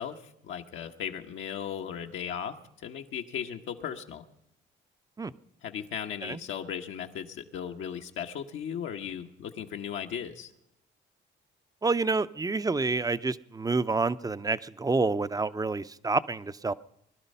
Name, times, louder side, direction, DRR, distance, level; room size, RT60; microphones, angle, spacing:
voice 1, 0.0-4.2 5.6-10.5, left 8 dB, 75° left, 3 dB, 1.2 m, -37 dB
voice 2, 11.8-16.7, right 3 dB, 20° right, 15 dB, 0.6 m, -28 dB
21.0 x 12.0 x 5.5 m, 0.80 s
cardioid pair, 90°, 20 cm